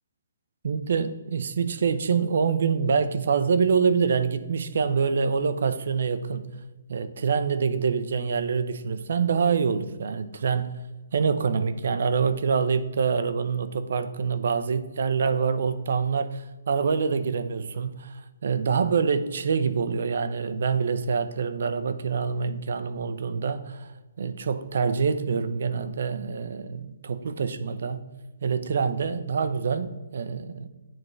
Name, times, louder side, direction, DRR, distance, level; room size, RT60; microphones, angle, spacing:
voice 1, 0.6-6.5 6.9-10.7 11.1-23.9 24.2-28.0 28.4-30.7, right 5 dB, 65° right, 0.5 m, -26 dB
8.9 x 3.5 x 3.2 m
hypercardioid pair, 150°, 0 cm